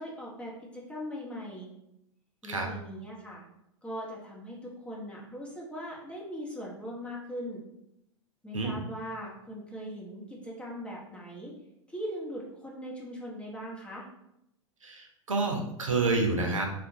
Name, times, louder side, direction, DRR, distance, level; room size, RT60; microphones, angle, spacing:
voice 1, 0.0-1.7 2.4-3.4 3.8-7.6 8.4-11.6 11.9-14.1, equal, 5° left, -4 dB, 0.9 m, -40 dB
voice 2, 14.8-16.7, right 3 dB, 85° right, 2 dB, 0.5 m, -28 dB
3.4 x 2.2 x 2.7 m, 0.81 s
figure-of-eight pair, 90°, 16 cm